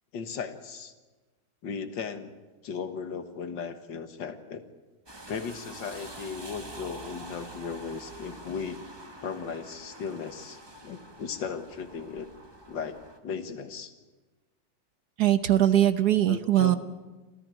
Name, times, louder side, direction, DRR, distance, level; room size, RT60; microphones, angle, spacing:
voice 1, 0.1-0.9 1.6-2.4 2.6-4.6 5.3-8.8 9.2-12.3 12.7-13.9 16.3-16.8, left 6 dB, 75° left, 8 dB, 2.1 m, -36 dB
sound 1, 5.1-13.2, right 1 dB, 15° right, 1.4 m, -46 dB
voice 2, 15.2-16.8, right 12 dB, 60° right, 11 dB, 1.3 m, -21 dB
27.0 x 14.5 x 9.0 m, 1.3 s
omnidirectional pair, 2.0 m